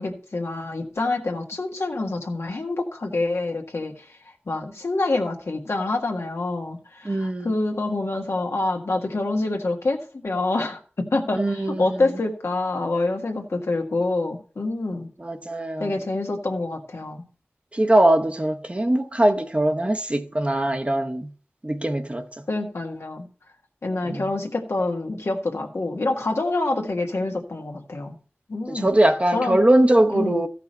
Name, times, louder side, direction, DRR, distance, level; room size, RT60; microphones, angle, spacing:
voice 1, 0.0-4.0 4.5-15.1 15.8-17.2 22.5-23.3 23.8-28.2 28.5-28.9 29.3-29.6 30.1-30.4, left 2 dB, 80° left, 1.6 m, -26 dB
voice 2, 7.0-7.5 11.4-12.2 15.2-15.9 17.7-21.3 21.6-22.3 24.1-24.2 28.7-30.5, right 1 dB, 30° right, 0.8 m, -21 dB
14.5 x 5.9 x 4.3 m
wide cardioid pair, 65°, 4 cm